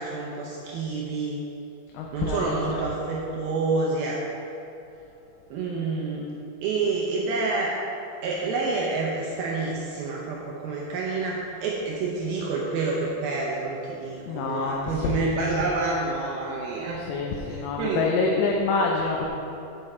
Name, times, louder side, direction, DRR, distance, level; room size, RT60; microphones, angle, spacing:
voice 1, 0.0-1.4 2.1-4.3 5.5-6.3 6.6-7.7 8.2-17.0 17.5-18.1, right 3 dB, 85° right, -3 dB, 2.1 m, -28 dB
voice 2, 1.9-2.9 14.3-15.2 15.6-15.7 17.0-19.3, left 4 dB, 80° left, 0 dB, 2.7 m, -27 dB
8.0 x 7.8 x 4.3 m, 2.8 s
omnidirectional pair, 5.2 m